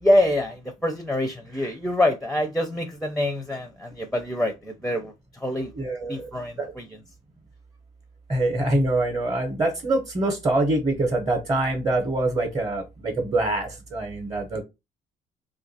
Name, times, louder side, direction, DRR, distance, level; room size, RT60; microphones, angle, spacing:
voice 1, 0.0-5.7 6.1-6.8, left 1 dB, ahead, 0.5 m, -25 dB
voice 2, 5.8-6.3 6.6-6.7 8.3-14.6, right 2 dB, 25° right, 0.8 m, -25 dB
2.6 x 2.5 x 4.0 m
cardioid pair, 110°, 17 cm